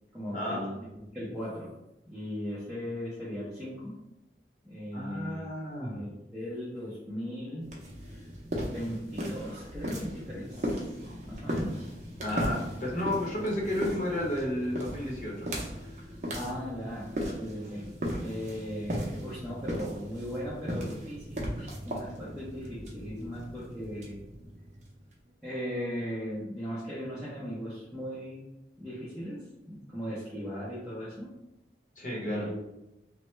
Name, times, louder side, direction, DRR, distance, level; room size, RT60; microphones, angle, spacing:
voice 1, 0.1-1.7 2.1-4.0 4.6-5.5 5.8-7.7 8.1-8.2 8.7-11.9 16.3-17.1 17.4-17.9 18.2-24.2 25.4-28.4 28.8-31.3 32.3-32.6, equal, ahead, -10 dB, 0.6 m, -38 dB
voice 2, 4.9-6.0 12.2-15.5 32.0-32.5, left 1 dB, 45° left, -4 dB, 0.9 m, -32 dB
sound 1, 7.6-25.1, equal, 40° right, 0.7 m, -37 dB
3.1 x 2.2 x 3.1 m, 0.93 s
head